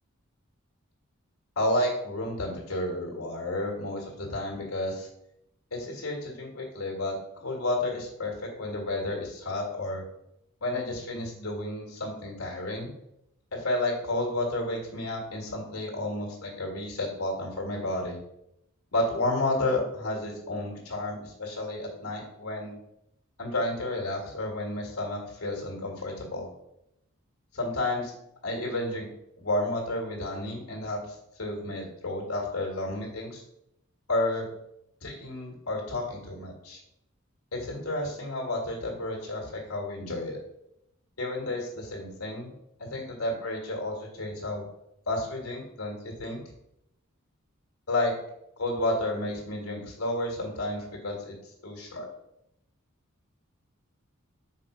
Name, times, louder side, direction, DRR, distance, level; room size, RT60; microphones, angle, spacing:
voice 1, 1.6-5.1 5.7-10.0 10.6-12.9 13.5-18.2 18.9-22.8 23.4-26.5 27.5-28.1 28.4-29.1 29.4-33.4 34.1-34.5 35.0-36.8 37.5-40.4 41.2-42.5 42.9-44.7 45.1-46.4 47.9-48.1 48.6-51.4 51.6-52.1, left 1 dB, 80° left, -1 dB, 1.8 m, -31 dB
5.6 x 4.3 x 4.9 m, 0.80 s
head